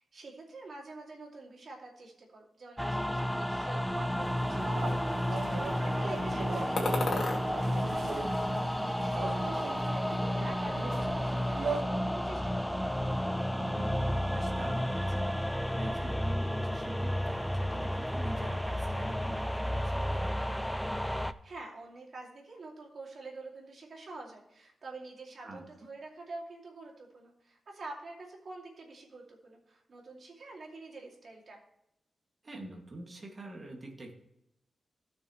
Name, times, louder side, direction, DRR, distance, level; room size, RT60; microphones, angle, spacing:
voice 1, 0.1-6.8 7.1-13.0 21.2-31.6, right 2 dB, 55° right, -1 dB, 2.6 m, -46 dB
sound 1, 2.8-21.3, equal, 5° left, 0.3 m, -32 dB
sound 2, 4.2-11.8, right 4 dB, 80° right, 2.2 m, -40 dB
voice 2, 6.2-6.6 13.6-20.4 25.4-25.9 32.4-34.1, right 1 dB, 30° right, 1 dB, 2.2 m, -45 dB
sound 3, 6.8-7.4 8.0-9.0 9.2-10.1, left 2 dB, 55° left, 2.4 m, -36 dB
16.5 x 6.3 x 3.1 m, 0.82 s
wide cardioid pair, 120°, 0 cm